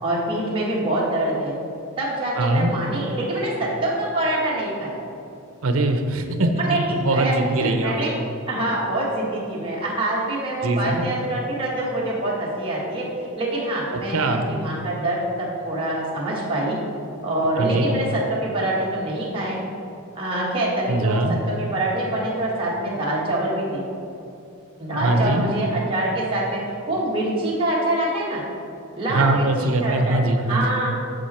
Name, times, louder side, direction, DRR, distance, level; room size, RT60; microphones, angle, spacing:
voice 1, 0.0-1.6 2.0-5.0 6.4-8.1 8.5-13.0 13.4-16.8 17.2-19.6 20.1-23.8 24.8-26.6 26.9-28.4 28.9-30.2 30.5-30.9, right 1 dB, 25° right, -7 dB, 1.6 m, -25 dB
voice 2, 2.4-2.7 5.6-6.5 6.9-8.0 10.6-11.0 13.9-14.4 17.6-17.9 20.9-21.4 25.0-25.5 29.1-30.8, right 2 dB, 70° right, 6 dB, 0.7 m, -22 dB
8.1 x 6.5 x 4.3 m, 2.6 s
head